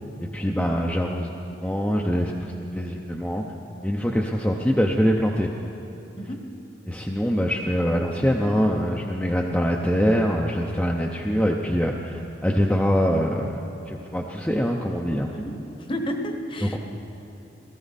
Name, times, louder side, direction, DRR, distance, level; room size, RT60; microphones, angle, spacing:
voice 1, 0.2-1.3 1.6-3.4 3.8-5.5 6.9-15.3 16.6-16.8, equal, 5° left, -1 dB, 0.6 m, -24 dB
voice 2, 15.8-16.8, equal, 25° left, 4 dB, 1.0 m, -31 dB
17.5 x 14.0 x 4.1 m, 3.0 s
head